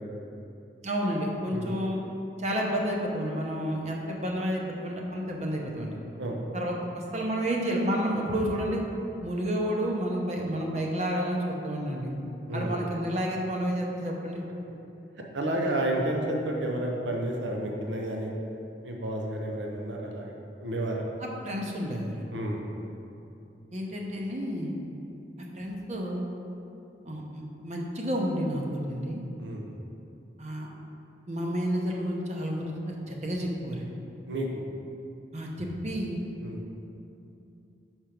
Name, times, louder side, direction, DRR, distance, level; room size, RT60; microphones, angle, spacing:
voice 1, 0.8-2.0 2.4-5.9 6.5-6.7 7.1-8.8 9.2-12.1 12.5-14.4 21.2-22.2 23.7-24.7 25.4-26.3 27.0-29.2 30.4-30.7 31.3-32.7 33.1-33.9 35.3-36.2, equal, 40° right, -1 dB, 0.7 m, -30 dB
voice 2, 15.3-18.3 18.8-20.3 20.6-21.0 22.3-22.6 29.4-29.8 34.3-34.6 36.4-36.6, right 1 dB, 85° right, 0 dB, 0.7 m, -31 dB
5.7 x 4.5 x 5.0 m, 2.8 s
head